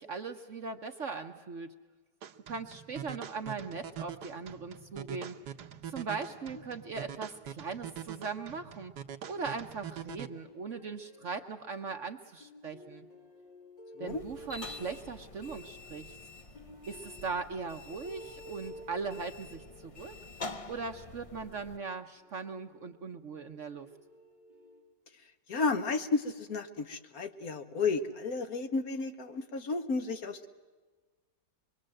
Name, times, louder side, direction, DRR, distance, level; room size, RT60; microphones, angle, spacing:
voice 1, 0.0-1.7 2.5-5.4 5.9-8.9 9.3-13.1 14.0-16.2 16.9-20.2 20.7-23.9, right 4 dB, 50° right, 6 dB, 1.1 m, -39 dB
sound 1, 2.2-10.3, right 9 dB, 65° right, 1.5 m, -44 dB
sound 2, 10.2-12.0 12.4-23.3 23.8-24.8, left 1 dB, 80° left, 4.0 m, -53 dB
sound 3, 14.1-21.8, left 3 dB, 35° left, 0.5 m, -47 dB
voice 2, 25.5-30.5, left 4 dB, 55° left, 8 dB, 1.5 m, -32 dB
25.0 x 22.5 x 7.8 m, 1.4 s
omnidirectional pair, 2.0 m